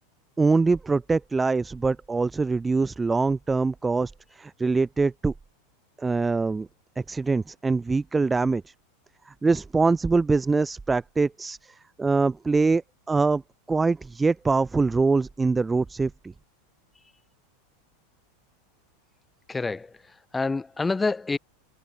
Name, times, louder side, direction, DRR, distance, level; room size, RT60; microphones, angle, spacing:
voice 1, 0.4-5.3 6.0-6.7 7.1-8.7 9.3-12.8 13.1-13.4 13.7-16.3, right 4 dB, 15° right, 0.4 m, -24 dB
voice 2, 19.5-21.4, left 3 dB, 10° left, 1.3 m, -28 dB
supercardioid pair, 125°, 0 cm